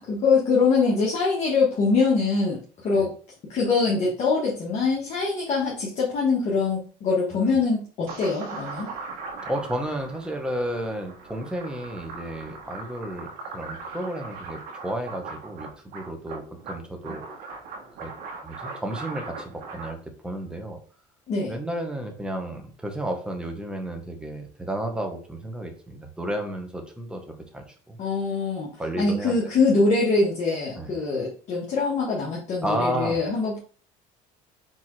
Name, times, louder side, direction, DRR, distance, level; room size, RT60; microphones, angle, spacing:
voice 1, 0.0-3.1 3.5-8.9 21.3-21.5 28.0-33.6, left 4 dB, 45° left, -5 dB, 1.5 m, -23 dB
sound 1, 8.1-19.9, right 3 dB, 60° right, 1.2 m, -39 dB
voice 2, 9.4-17.2 18.0-18.1 18.4-20.0 20.2-20.8 21.4-28.0 28.8-29.5 30.8-30.9 32.6-33.2, right 1 dB, 5° right, 3 dB, 1.0 m, -32 dB
4.5 x 3.6 x 3.2 m, 0.41 s
cardioid pair, 120°, 17 cm